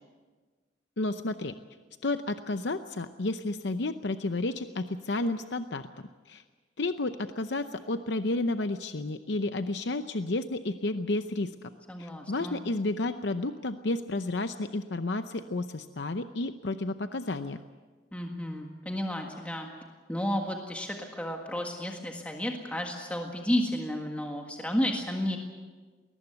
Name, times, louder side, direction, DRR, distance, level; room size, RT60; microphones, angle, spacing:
voice 1, 1.0-1.5 2.0-5.9 6.3-6.4 6.8-11.5 12.0-17.6, left 2 dB, 70° left, 9 dB, 0.7 m, -31 dB
voice 2, 11.9-12.6 18.1-19.7 20.1-25.4, equal, 10° left, 1 dB, 1.7 m, -32 dB
21.5 x 19.0 x 8.1 m, 1.4 s
head